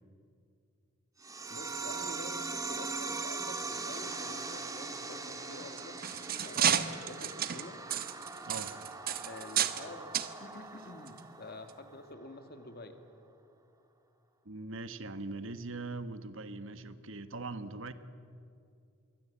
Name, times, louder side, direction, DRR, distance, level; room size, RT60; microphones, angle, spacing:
sound 1, 1.2-12.2, right 4 dB, 15° right, 1.6 m, -41 dB
voice 1, 1.5-6.1 6.4-7.8 9.2-10.1 10.4-13.0, left 2 dB, 45° left, 7 dB, 2.3 m, -48 dB
sound 2, 5.6-9.9 10.1-10.3 11.1-11.2 11.7-11.8, right 9 dB, 45° right, 1.1 m, -32 dB
voice 2, 8.4-9.0 14.4-17.9, right 3 dB, 65° right, 11 dB, 1.3 m, -41 dB
27.0 x 23.0 x 8.5 m, 2.5 s
head